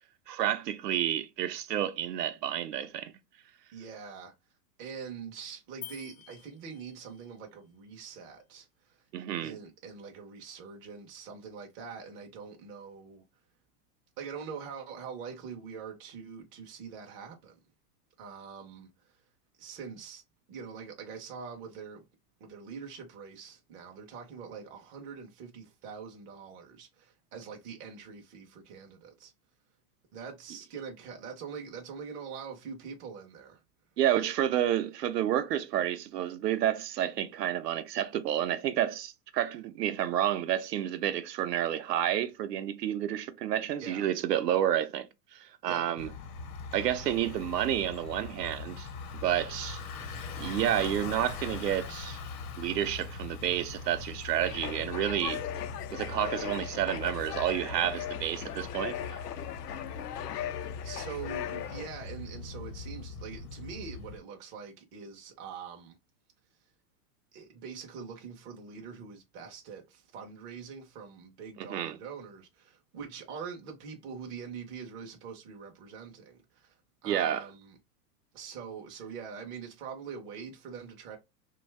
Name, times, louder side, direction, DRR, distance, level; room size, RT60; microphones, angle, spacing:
voice 1, 0.3-3.1 9.1-9.6 34.0-46.1 46.7-48.9 49.2-49.8 50.4-52.2 52.6-55.4 55.9-59.2 71.6-72.0 77.0-77.4, right 11 dB, 85° right, 0.6 m, -30 dB
voice 2, 3.7-4.3 4.8-9.1 9.4-13.2 14.2-17.6 18.2-19.2 19.6-20.2 20.5-22.0 22.4-29.3 30.1-33.6 43.8-44.1 45.6-46.0 60.2-60.4 60.8-66.0 67.3-76.8 77.0-77.8 78.3-81.2, right 6 dB, 25° right, 0.4 m, -44 dB
sound 1, 5.8-7.4, left 12 dB, 35° left, 0.5 m, -48 dB
Bicycle, 46.0-64.2, left 4 dB, 65° left, 0.9 m, -41 dB
sound 2, 54.4-61.9, left 11 dB, 85° left, 0.6 m, -38 dB
2.6 x 2.2 x 3.1 m
hypercardioid pair, 120°, 47 cm